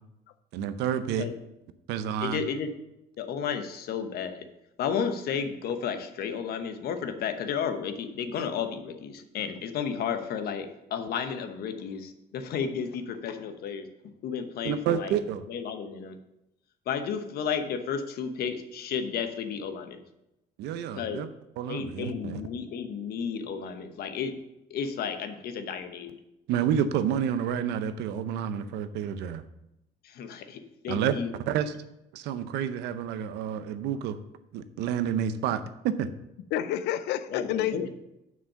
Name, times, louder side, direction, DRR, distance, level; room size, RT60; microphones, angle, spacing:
voice 1, 0.5-1.3 1.9-2.4 14.6-15.4 20.6-21.3 21.6-22.4 26.5-29.4 30.9-31.2 31.5-31.7 32.1-34.2 34.5-36.1, right 9 dB, 85° right, 11 dB, 0.7 m, -29 dB
voice 2, 2.2-2.7 3.2-4.4 4.8-13.9 14.2-15.1 15.5-16.2 16.9-20.0 20.9-21.2 21.7-24.3 24.7-26.2 30.0-31.3 37.3-37.9, left 7 dB, 65° left, 8 dB, 1.0 m, -32 dB
voice 3, 36.5-37.9, left 11 dB, 85° left, 13 dB, 0.6 m, -29 dB
7.3 x 6.1 x 5.6 m, 0.87 s
cardioid pair, 110°, 17 cm